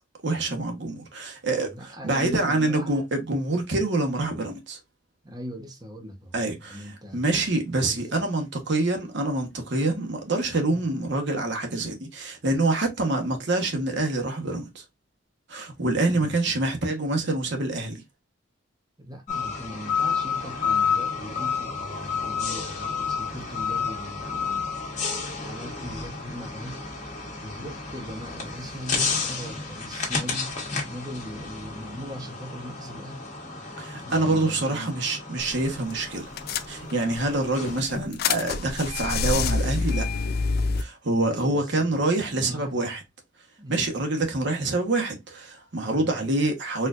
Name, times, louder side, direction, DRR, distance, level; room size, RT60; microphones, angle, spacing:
voice 1, 0.2-4.8 6.3-14.8 15.5-18.0 33.8-36.2 36.7-40.1 40.8-43.0 43.7-46.9, right 2 dB, 65° right, 1.0 m, -26 dB
voice 2, 1.7-3.0 5.2-7.2 7.7-8.1 10.7-10.9 15.9-16.6 19.0-24.8 25.4-26.9 27.4-33.2 34.0-35.0 37.3-37.5 41.3-42.9 43.6-43.9 45.8-46.3, equal, 20° right, 0.8 m, -40 dB
sound 1, 19.3-37.8, left 5 dB, 40° left, 1.4 m, -31 dB
sound 2, 35.4-35.6 35.9-36.0 36.4-37.2 37.7-40.8, left 4 dB, 55° left, 0.4 m, -26 dB
4.3 x 2.4 x 2.4 m
head